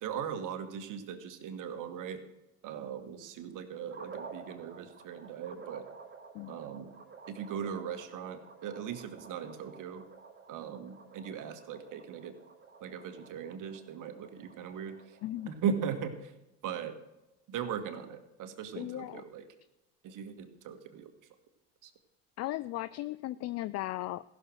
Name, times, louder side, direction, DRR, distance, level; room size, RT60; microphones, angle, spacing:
voice 1, 0.0-2.2 2.6-5.9 6.5-6.9 7.3-10.1 10.5-12.4 12.8-15.2 15.5-16.3 16.6-17.0 17.5-19.5 20.0-21.1 21.8-21.9, right 7 dB, 55° right, 8 dB, 1.7 m, -39 dB
sound 1, 3.9-16.2, right 5 dB, 30° right, 3.7 m, -52 dB
voice 2, 18.8-19.2 22.4-24.2, left 16 dB, 45° left, 17 dB, 0.4 m, -36 dB
15.0 x 6.6 x 6.3 m, 0.96 s
hypercardioid pair, 75°, 36 cm